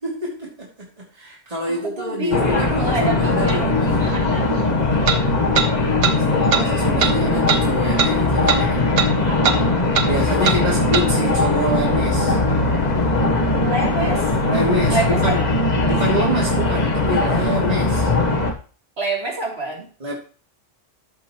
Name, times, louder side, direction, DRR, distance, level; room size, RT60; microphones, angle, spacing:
voice 1, 0.0-0.9 1.1-4.1 6.1-8.8 10.0-12.4 14.4-15.4 15.8-18.1 20.0-20.1, right 1 dB, 30° right, -4 dB, 2.9 m, -26 dB
voice 2, 1.7-4.4 9.3-9.6 13.6-14.3 14.9-15.4 19.0-19.9, right 2 dB, 55° right, -4 dB, 3.6 m, -27 dB
sound 1, 2.3-18.5, left 2 dB, 35° left, 1.3 m, -20 dB
sound 2, 3.5-3.6 5.1-5.2 5.6-5.7 6.0-6.2 6.5-6.7 7.0-7.1 7.5-7.6 8.0-8.1 8.5-8.6 9.0-9.1 9.4-9.6 9.9-10.1 10.4-10.6 10.9-11.1, right 6 dB, 85° right, 1.3 m, -20 dB
13.5 x 6.3 x 3.1 m, 0.38 s
omnidirectional pair, 1.3 m